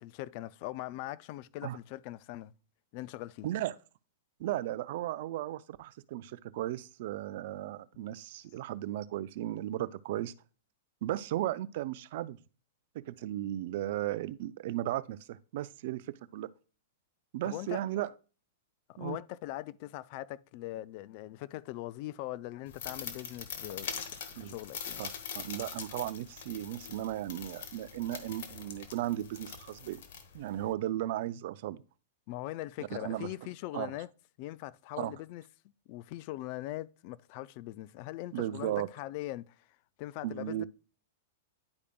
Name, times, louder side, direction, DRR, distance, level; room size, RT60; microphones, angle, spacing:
voice 1, 0.0-2.5 2.9-3.5 17.4-17.8 18.9-24.0 24.3-25.0 32.3-34.1 34.4-35.4 35.9-39.5 40.0-40.6, left 16 dB, 50° left, 0.3 m, -41 dB
voice 2, 3.4-3.8 4.4-10.3 11.0-12.4 12.9-16.5 17.3-18.1 19.0-19.2 24.4-24.6 25.0-25.1 25.4-30.0 30.3-31.8 32.8-33.3 33.7-33.9 35.0-35.1 38.3-38.9 40.2-40.6, right 14 dB, 60° right, 0.4 m, -35 dB
sound 1, 22.7-30.7, left 7 dB, 65° left, 1.1 m, -43 dB
10.5 x 4.9 x 2.3 m
hypercardioid pair, 120°, 0 cm